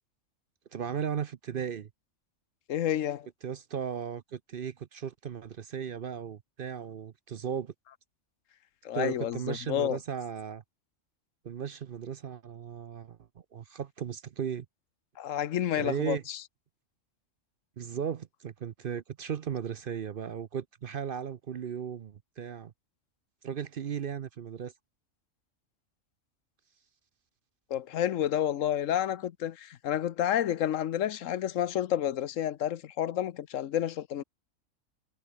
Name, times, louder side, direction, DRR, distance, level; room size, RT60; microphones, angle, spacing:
voice 1, 0.7-1.9 3.4-7.7 8.9-10.6 11.4-13.2 13.5-14.7 15.8-16.2 17.8-22.7 23.4-24.7, right 8 dB, 55° right, 0.7 m, -36 dB
voice 2, 2.7-3.3 8.8-10.0 15.2-16.4 27.7-34.2, left 11 dB, 80° left, 1.1 m, -30 dB
omnidirectional pair, 1.3 m